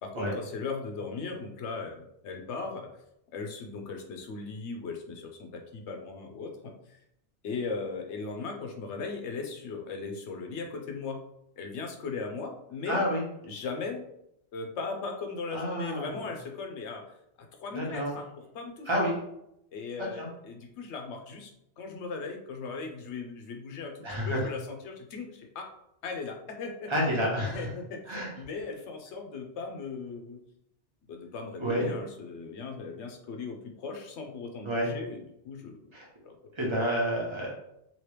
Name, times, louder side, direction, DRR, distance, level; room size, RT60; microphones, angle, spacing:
voice 1, 0.0-2.9 3.3-6.5 6.9-7.0 7.4-11.2 11.6-13.0 13.4-14.0 14.5-17.0 17.6-18.9 19.7-21.5 21.8-25.6 26.0-26.9 27.4-30.4 31.1-35.8 36.2-36.3, left 4 dB, 85° left, 3 dB, 0.9 m, -38 dB
voice 2, 12.9-13.2 15.5-16.3 17.7-18.2 18.9-19.1 20.2-20.3 24.0-24.5 26.9-27.7 28.1-28.3 31.6-31.9 34.6-34.9 35.9-36.1 36.5-37.5, equal, 25° right, -3 dB, 1.0 m, -29 dB
2.9 x 2.9 x 3.2 m, 0.78 s
omnidirectional pair, 1.1 m